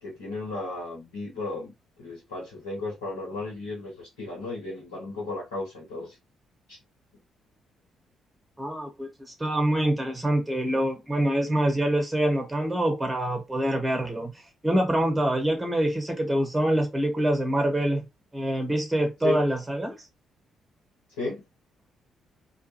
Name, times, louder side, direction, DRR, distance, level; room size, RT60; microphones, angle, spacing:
voice 1, 0.0-1.7 2.0-6.2 6.7-6.8 19.2-19.4 21.2-21.4, left 3 dB, 80° left, 1.1 m, -34 dB
voice 2, 8.6-14.3 14.6-18.0 18.3-19.9, right 1 dB, 15° right, 1.4 m, -25 dB
2.5 x 2.2 x 2.9 m
figure-of-eight pair, 40°, 0 cm